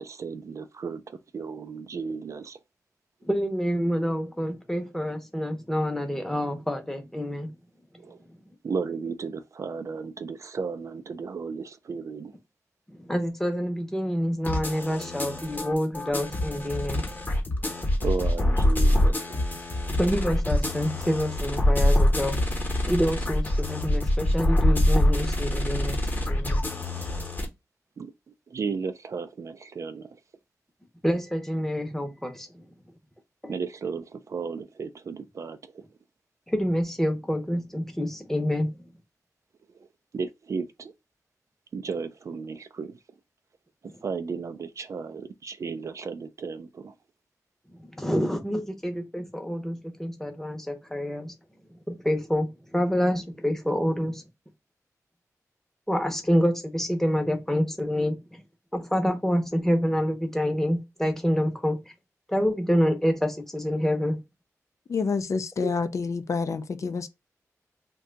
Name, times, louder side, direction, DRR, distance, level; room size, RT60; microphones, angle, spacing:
voice 1, 0.0-2.6 8.0-8.2 8.6-12.4 18.0-19.4 28.0-28.1 28.5-30.2 33.5-35.8 40.1-40.9 41.7-43.0 44.0-46.9, right 5 dB, 60° right, 0.3 m, -34 dB
voice 2, 3.2-7.5 12.9-17.1 20.0-22.4 22.8-26.6 31.0-32.7 33.4-33.5 36.5-38.8 43.8-43.9 47.7-51.3 51.9-54.2 55.9-58.4 58.7-61.8 62.3-64.2, equal, 5° left, 0.7 m, -27 dB
sound 1, 14.4-27.5, left 1 dB, 30° left, 0.9 m, -25 dB
voice 3, 64.9-67.1, left 5 dB, 60° left, 0.3 m, -28 dB
2.7 x 2.2 x 3.8 m
wide cardioid pair, 105°, 6 cm